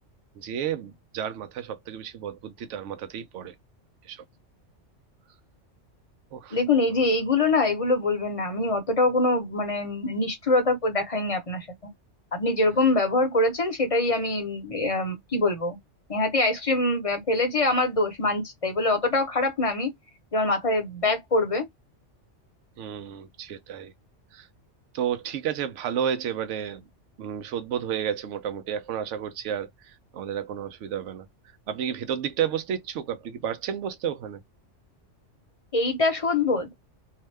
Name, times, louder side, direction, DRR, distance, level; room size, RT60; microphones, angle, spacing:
voice 1, 0.4-3.5 4.0-4.2 6.3-6.6 22.8-23.9 24.3-24.5 24.9-26.8 27.2-31.3 31.7-34.4, right 9 dB, 75° right, 0.9 m, -31 dB
voice 2, 6.5-11.7 12.3-15.8 16.1-19.9 20.3-21.7 35.7-36.7, left 2 dB, 35° left, 0.7 m, -24 dB
2.8 x 2.1 x 3.2 m
omnidirectional pair, 1.3 m